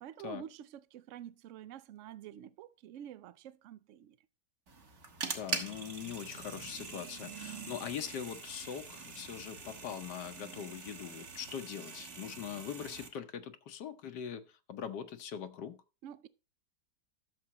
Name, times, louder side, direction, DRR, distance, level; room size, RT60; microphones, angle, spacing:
voice 1, 0.0-4.2 16.0-16.3, right 10 dB, 65° right, 0.7 m, -48 dB
sound 1, 4.7-13.1, right 4 dB, 45° right, 1.5 m, -43 dB
voice 2, 5.3-15.8, left 8 dB, 80° left, 1.4 m, -42 dB
12.0 x 6.9 x 2.9 m
omnidirectional pair, 1.8 m